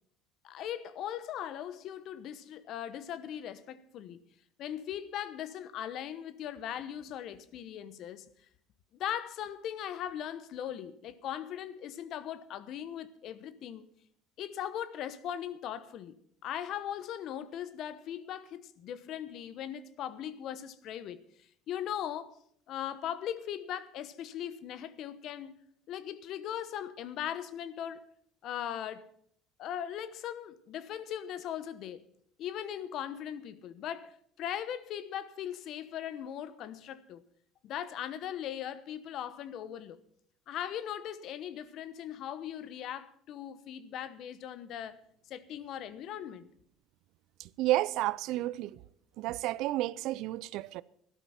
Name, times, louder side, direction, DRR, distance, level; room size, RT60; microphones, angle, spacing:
voice 1, 0.4-4.2 4.6-8.3 9.0-13.9 14.4-21.2 21.7-22.4 22.7-25.6 25.9-28.0 28.4-29.1 29.6-32.0 32.4-37.2 37.6-40.0 40.5-45.0 45.3-46.5, left 10 dB, 60° left, 1.0 m, -39 dB
voice 2, 47.4-48.8 49.2-50.8, right 16 dB, 70° right, 0.4 m, -31 dB
13.0 x 12.0 x 5.7 m
supercardioid pair, 95°, 0 cm